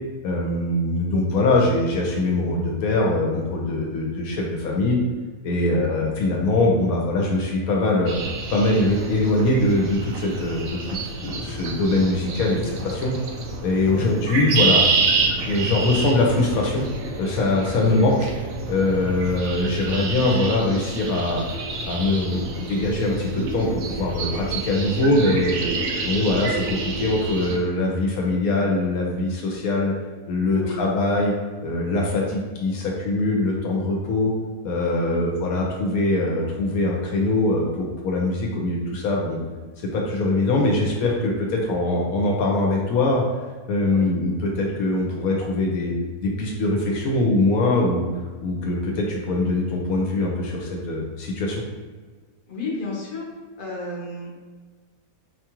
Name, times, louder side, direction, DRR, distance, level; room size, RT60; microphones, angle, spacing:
voice 1, 0.2-5.0 5.4-8.2 8.5-11.0 11.2-13.1 13.6-14.8 15.5-16.9 17.2-18.3 18.7-21.4 21.8-25.6 26.0-29.9 30.3-31.3 31.6-34.3 34.6-39.4 39.8-43.2 43.7-45.9 46.2-48.0 48.4-51.6, left 2 dB, 75° left, -1 dB, 1.0 m, -22 dB
voice 2, 5.5-6.0 13.8-14.1 17.7-18.0 30.5-30.8 35.0-35.3 43.9-44.1 52.5-53.3 53.6-54.3, left 1 dB, 45° left, -4 dB, 0.8 m, -33 dB
sound 1, 8.1-27.6, right 3 dB, 70° right, 0.9 m, -28 dB
4.4 x 2.3 x 2.9 m, 1.4 s
omnidirectional pair, 1.6 m